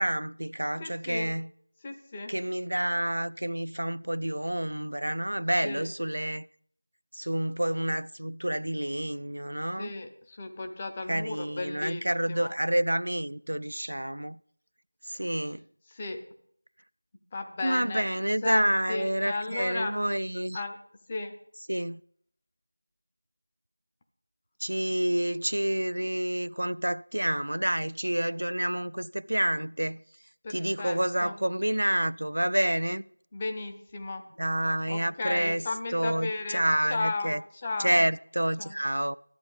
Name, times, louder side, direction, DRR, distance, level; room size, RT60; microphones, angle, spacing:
voice 1, 0.0-1.5 2.3-6.5 7.1-9.9 11.1-14.4 15.0-15.6 17.6-20.6 21.7-22.0 24.6-30.0 30.5-33.0 34.4-35.7 35.9-37.4 37.8-39.2, right 1 dB, 85° right, 0.3 m, -28 dB
voice 2, 0.8-1.3 1.8-2.3 5.6-5.9 9.8-12.5 15.9-16.2 17.3-18.0 18.4-20.0 20.5-20.8 21.1-21.3 30.4-31.3 33.3-34.2 34.9-36.6 36.9-38.0 38.6-38.7, left 3 dB, 10° left, 0.5 m, -35 dB
13.0 x 8.6 x 5.2 m
figure-of-eight pair, 180°, 0 cm